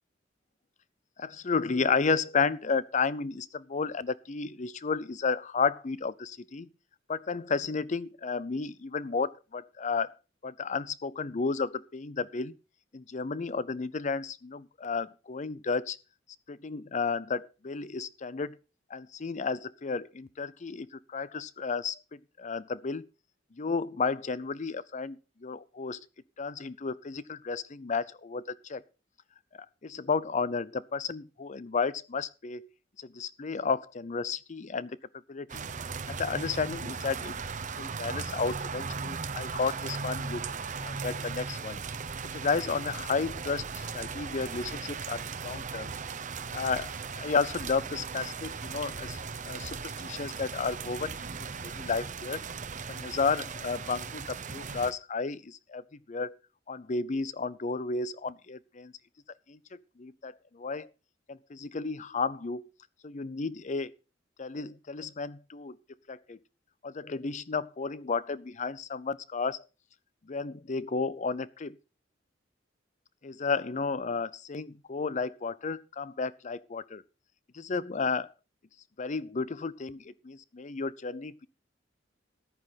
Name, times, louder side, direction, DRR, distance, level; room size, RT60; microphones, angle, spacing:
voice 1, 1.2-6.7 7.1-10.1 10.4-12.5 12.9-16.0 16.5-18.6 18.9-23.1 23.6-26.0 26.4-28.8 29.8-32.7 33.0-35.0 35.3-35.6 36.1-37.4 37.8-40.4 40.8-41.8 42.3-45.9 46.5-51.3 51.6-52.4 52.9-55.8 56.1-56.3 56.7-58.9 59.5-60.9 61.3-62.7 63.0-63.9 64.4-65.8 66.1-66.4 66.8-69.6 70.3-71.8 73.2-77.0 77.5-78.3 79.0-81.5, left 4 dB, 40° left, 0.6 m, -32 dB
sound 1, 35.5-54.9, right 5 dB, 40° right, 0.8 m, -37 dB
14.0 x 9.6 x 4.1 m
head